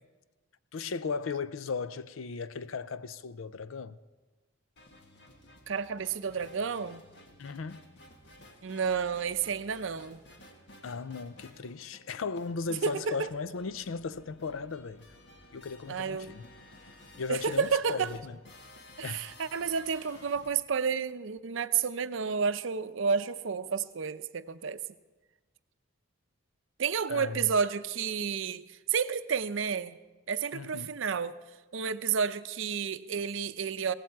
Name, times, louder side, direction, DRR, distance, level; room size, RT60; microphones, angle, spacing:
voice 1, 0.7-4.0 7.4-7.8 10.8-15.0 15.5-16.4 17.2-18.4 19.0-19.3 27.1-27.5 30.5-30.9, left 4 dB, 80° left, 0.5 m, -36 dB
sound 1, 4.8-20.5, left 1 dB, 60° left, 1.8 m, -54 dB
voice 2, 5.7-7.0 8.6-10.2 12.8-13.1 15.9-16.3 17.3-18.1 19.0-24.8 26.8-30.0 30.3-31.4 31.7-33.9, right 6 dB, 65° right, 0.5 m, -31 dB
17.5 x 15.0 x 4.6 m
head